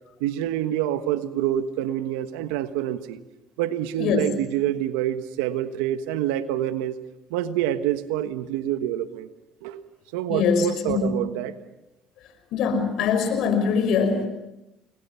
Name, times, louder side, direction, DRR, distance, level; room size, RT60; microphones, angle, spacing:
voice 1, 0.2-3.2 3.6-7.0 7.3-9.3 9.6-9.8 10.1-11.6, right 12 dB, 90° right, 10 dB, 1.3 m, -27 dB
voice 2, 4.0-4.3 10.3-11.2 12.5-14.3, left 5 dB, 70° left, 8 dB, 5.7 m, -23 dB
30.0 x 21.0 x 5.8 m, 0.93 s
supercardioid pair, 80°, 0 cm